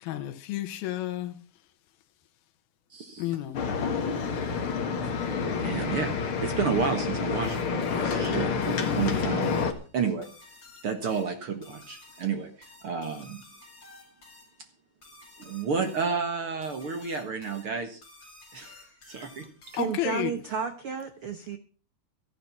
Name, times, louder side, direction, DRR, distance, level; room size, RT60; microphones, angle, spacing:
voice 1, 0.1-1.3 3.2-3.6 19.8-20.3, left 13 dB, 85° left, 2.9 m, -31 dB
voice 2, 2.9-3.3 5.6-9.6 9.9-10.3 10.8-13.4 15.4-18.0 18.5-19.5, right 5 dB, 50° right, 1.7 m, -31 dB
sound 1, 3.5-9.7, left 5 dB, 45° left, 1.9 m, -28 dB
sound 2, 7.4-20.2, left 2 dB, 30° left, 5.6 m, -53 dB
voice 3, 19.7-21.6, right 7 dB, 85° right, 1.2 m, -32 dB
14.5 x 11.0 x 5.7 m
omnidirectional pair, 4.2 m